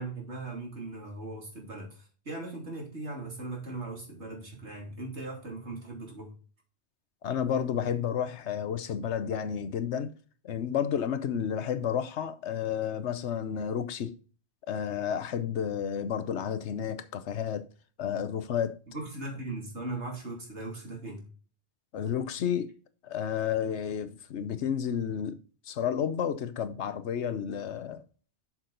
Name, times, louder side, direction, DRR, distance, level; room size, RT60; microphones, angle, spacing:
voice 1, 0.0-6.3 18.9-21.2, right 2 dB, 80° right, 3.2 m, -39 dB
voice 2, 7.2-10.1 10.4-14.1 14.7-17.7 18.0-18.8 21.9-22.7 23.0-28.0, left 8 dB, 85° left, 1.1 m, -31 dB
7.2 x 6.1 x 3.9 m
omnidirectional pair, 1.1 m